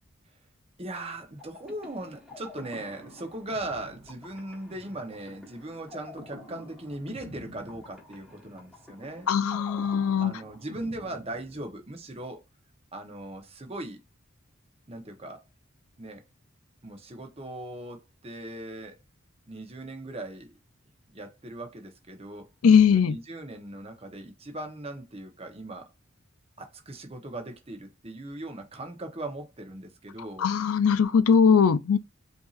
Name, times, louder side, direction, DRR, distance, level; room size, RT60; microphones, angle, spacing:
voice 1, 0.8-9.3 10.2-12.4 12.9-14.0 14.9-15.4 16.0-16.2 16.8-19.0 19.5-20.5 21.1-22.5 22.9-25.9 26.6-30.5, right 1 dB, 30° right, 0.9 m, -39 dB
sound 1, 1.4-12.1, left 1 dB, ahead, 1.5 m, -48 dB
voice 2, 9.3-10.3 22.6-23.2 30.4-32.0, left 6 dB, 90° left, 0.4 m, -20 dB
4.5 x 2.6 x 2.5 m
head